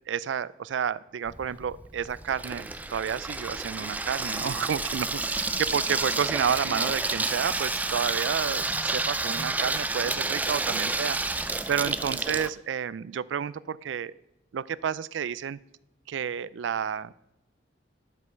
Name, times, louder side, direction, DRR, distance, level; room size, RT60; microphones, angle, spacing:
voice 1, 0.1-11.2 11.7-14.1 14.5-15.6 16.1-17.1, right 7 dB, 85° right, 20 dB, 0.4 m, -30 dB
Water tap faucet / Sink (filling or washing), 1.3-12.5, right 3 dB, 10° right, 0.3 m, -30 dB
11.0 x 5.4 x 6.4 m, 0.84 s
head